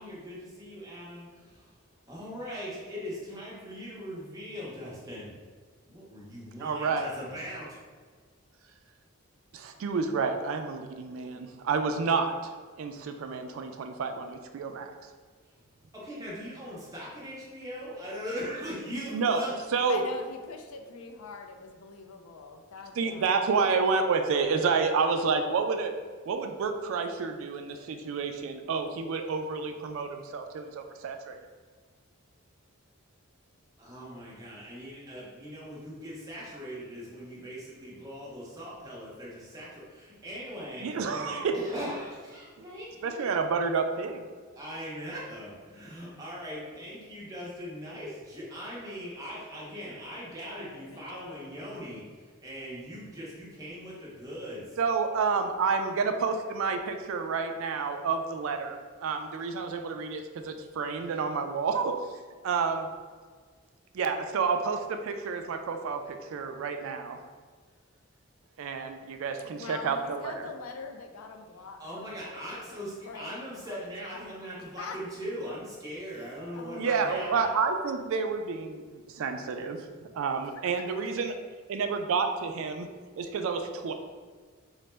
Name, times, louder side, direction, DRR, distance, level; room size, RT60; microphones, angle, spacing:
voice 1, 0.0-1.7 2.1-5.3 5.9-7.8 15.9-19.5 33.8-43.3 44.5-54.8 71.8-77.5, equal, 15° right, -6 dB, 0.8 m, -40 dB
voice 2, 6.6-7.0 9.5-12.5 12.8-14.9 19.1-19.4 19.7-20.0 23.0-25.9 26.3-31.4 40.8-41.6 43.0-44.2 54.8-62.0 62.4-62.9 63.9-67.2 68.6-70.5 76.7-79.8 80.1-81.3 81.7-82.9 83.2-83.9, right 5 dB, 70° right, 6 dB, 0.3 m, -29 dB
voice 3, 19.9-23.3 50.5-51.5 69.4-75.0 76.1-77.5 80.4-81.1, left 4 dB, 85° left, 4 dB, 0.4 m, -45 dB
3.9 x 2.1 x 3.3 m, 1.5 s
head